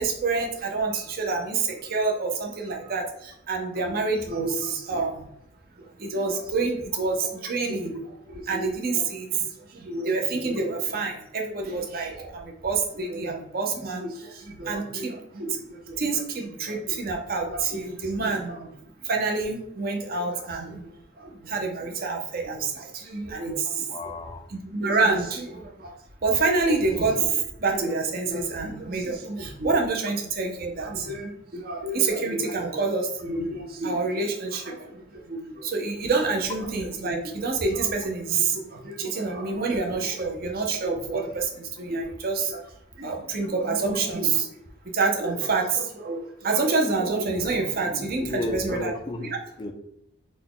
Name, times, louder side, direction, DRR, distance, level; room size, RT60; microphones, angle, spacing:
voice 1, 0.0-5.3 6.0-8.0 8.3-9.3 9.7-18.7 19.0-20.8 21.2-24.1 24.5-25.9 26.2-35.0 35.3-42.6 43.0-44.5 44.9-48.9, right 3 dB, 45° right, 2 dB, 0.6 m, -27 dB
voice 2, 23.9-24.4 48.2-49.7, left 1 dB, 20° left, 5 dB, 0.3 m, -33 dB
4.0 x 2.2 x 3.7 m, 0.78 s
head